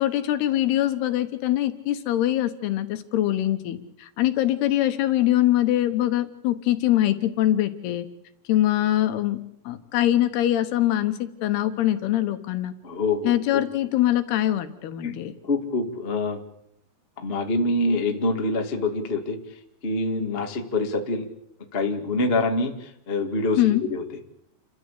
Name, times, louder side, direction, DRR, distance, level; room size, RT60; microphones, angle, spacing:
voice 1, 0.0-8.1 8.5-9.4 9.7-12.7 13.2-15.3 23.6-23.8, left 13 dB, 70° left, 9 dB, 3.0 m, -23 dB
voice 2, 12.8-13.4 15.0-15.1 15.5-16.4 17.2-19.4 19.8-21.2 21.7-23.6 23.9-24.0, left 2 dB, 35° left, 3 dB, 0.9 m, -25 dB
29.5 x 13.5 x 8.3 m, 0.80 s
omnidirectional pair, 5.1 m